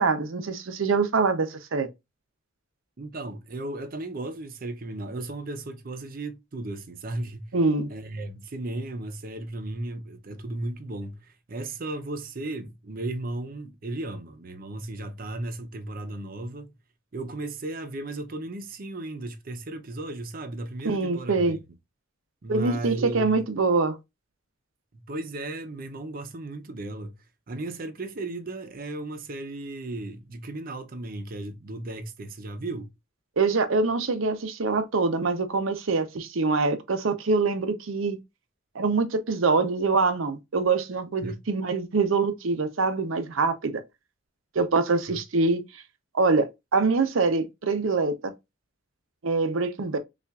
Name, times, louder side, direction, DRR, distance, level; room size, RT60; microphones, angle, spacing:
voice 1, 0.0-1.9 7.5-7.9 20.8-21.6 22.5-24.0 33.4-38.2 38.7-43.8 44.5-45.6 46.1-48.3 49.2-50.0, right 4 dB, 85° right, 0.6 m, -24 dB
voice 2, 3.0-7.5 7.9-16.7 17.1-21.6 22.4-23.4 24.9-27.1 27.5-32.9 41.2-41.4 45.1-45.2, right 2 dB, 45° right, 0.6 m, -35 dB
5.5 x 2.4 x 2.3 m
head